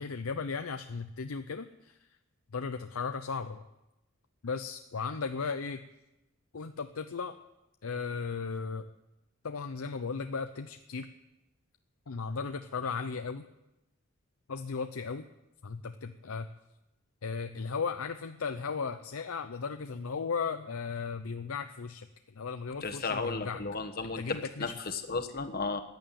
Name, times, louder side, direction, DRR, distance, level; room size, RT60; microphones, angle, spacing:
voice 1, 0.0-2.0 2.5-3.6 4.4-5.8 6.5-7.3 7.8-8.8 9.4-11.1 12.1-13.5 14.5-15.3 15.6-16.5 17.2-22.1 22.3-23.6 24.2-24.7, left 5 dB, 75° left, 8 dB, 0.6 m, -36 dB
voice 2, 22.8-25.8, left 4 dB, 45° left, 7 dB, 1.3 m, -34 dB
14.5 x 9.2 x 9.2 m, 0.95 s
head